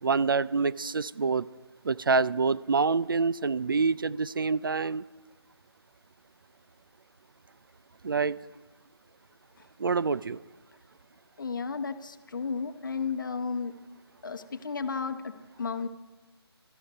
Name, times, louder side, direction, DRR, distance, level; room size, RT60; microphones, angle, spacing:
voice 1, 0.0-1.5 1.8-5.0 8.0-8.4 9.8-10.4, right 4 dB, 55° right, 17 dB, 0.4 m, -26 dB
voice 2, 11.4-13.7 14.2-15.9, left 5 dB, 50° left, 10 dB, 1.0 m, -33 dB
14.0 x 13.0 x 5.4 m, 1.2 s
figure-of-eight pair, 165°, 14 cm